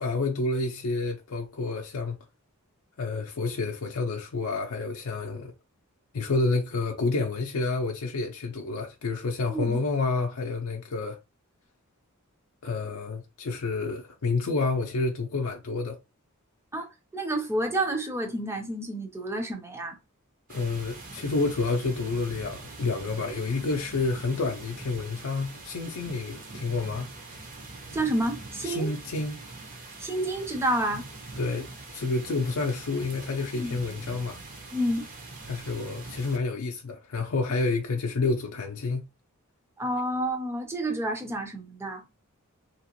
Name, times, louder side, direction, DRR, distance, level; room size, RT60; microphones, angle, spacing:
voice 1, 0.0-2.2 3.0-5.5 6.1-11.2 12.6-16.0 20.5-27.1 28.6-29.4 31.4-31.7 31.9-34.4 35.5-39.0, left 3 dB, 70° left, 0.5 m, -29 dB
voice 2, 16.7-20.0 27.9-28.9 30.0-31.1 33.6-33.8 34.7-35.1 39.8-42.0, right 1 dB, 10° right, 0.6 m, -29 dB
sound 1, 20.5-36.4, right 3 dB, 40° right, 0.9 m, -43 dB
2.9 x 2.9 x 2.9 m
head